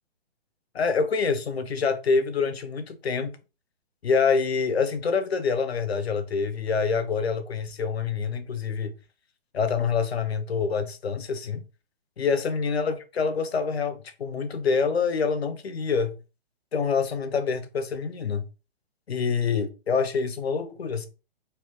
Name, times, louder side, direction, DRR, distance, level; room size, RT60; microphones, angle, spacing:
voice 1, 0.7-3.4 4.0-9.0 9.5-11.6 12.2-16.2 16.7-18.4 19.1-21.1, left 5 dB, 90° left, 0.8 m, -26 dB
3.3 x 2.4 x 3.6 m
hypercardioid pair, 140°, 30 cm